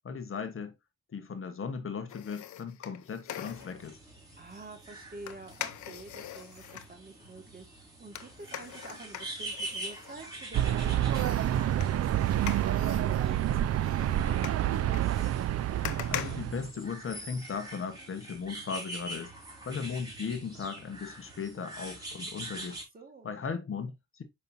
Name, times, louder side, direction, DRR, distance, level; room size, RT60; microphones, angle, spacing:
voice 1, 0.0-0.7 1.1-4.0 15.7-19.3 19.6-22.8 23.2-24.2, left 5 dB, 45° left, 1.3 m, -37 dB
sound 1, 2.1-3.9 5.3-6.9 8.1-10.7 11.1-17.3 17.7-17.8, left 11 dB, 80° left, 0.8 m, -43 dB
sound 2, 3.4-22.8, right 1 dB, 15° right, 4.0 m, -45 dB
voice 2, 4.4-12.8 13.1-14.7 22.9-23.3, right 3 dB, 30° right, 2.0 m, -48 dB
sound 3, 10.5-16.7, right 12 dB, 60° right, 0.5 m, -28 dB
6.6 x 5.4 x 2.7 m
cardioid pair, 90°, 29 cm